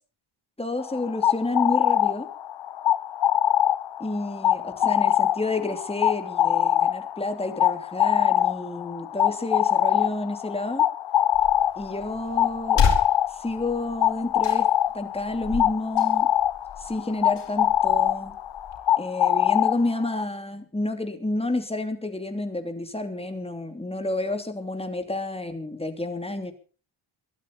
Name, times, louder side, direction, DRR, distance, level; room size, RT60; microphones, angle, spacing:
voice 1, 0.6-2.3 4.0-10.9 11.8-12.8 13.4-14.7 14.9-16.3 16.8-18.3 19.0-26.5, left 2 dB, 10° left, 7 dB, 2.8 m, -30 dB
sound 1, 0.8-20.2, left 11 dB, 60° left, 0.7 m, -24 dB
sound 2, 11.3-18.8, left 6 dB, 80° left, 4.6 m, -32 dB
22.0 x 13.0 x 4.1 m, 0.36 s
wide cardioid pair, 125°, 49 cm